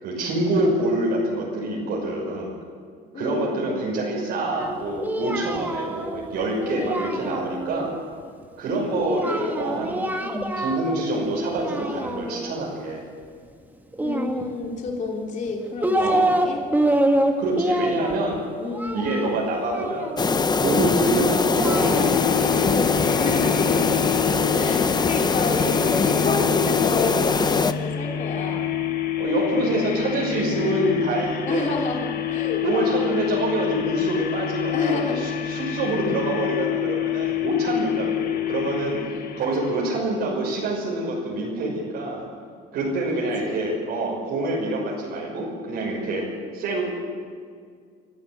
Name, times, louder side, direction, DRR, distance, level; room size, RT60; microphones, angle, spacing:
voice 1, 0.0-2.5 3.1-7.9 8.6-10.1 10.6-13.0 16.0-16.2 17.4-18.4 18.9-20.1 20.6-22.4 29.2-31.7 32.6-39.0 39.4-42.3 42.7-46.3 46.5-46.9, right 2 dB, 75° right, -3 dB, 6.1 m, -26 dB
voice 2, 3.1-3.7 8.8-10.6 14.0-16.6 18.6-19.2 23.2-23.9 24.6-28.7 30.7-30.8 31.5-33.1 34.7-35.2 35.9-36.3 39.9-40.0 40.4-40.7 43.1-43.8, left 3 dB, 45° left, 0 dB, 3.3 m, -30 dB
Singing, 4.6-7.8 9.0-11.0 11.3-12.5 13.9-14.9 15.5-16.5 16.7-20.4 21.2-23.4, right 1 dB, 10° right, 1.9 m, -26 dB
deep silent in the forest, 20.2-27.7, left 4 dB, 25° left, 0.9 m, -22 dB
sound 1, 21.7-40.0, left 10 dB, 65° left, 1.8 m, -28 dB
25.0 x 13.5 x 8.0 m, 2.1 s
cardioid pair, 110°, 17 cm